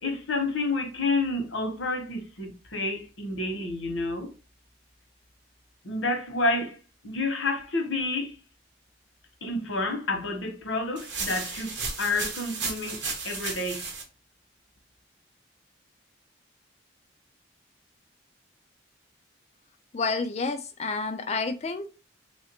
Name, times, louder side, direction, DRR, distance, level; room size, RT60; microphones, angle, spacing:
voice 1, 0.0-4.3 5.8-6.8 7.0-8.4 9.4-13.9, left 2 dB, 90° left, 1.0 m, -29 dB
sound 1, 11.0-14.0, right 4 dB, 75° right, 0.9 m, -34 dB
voice 2, 19.9-21.9, left 4 dB, 35° left, 0.3 m, -29 dB
3.2 x 2.5 x 2.9 m
head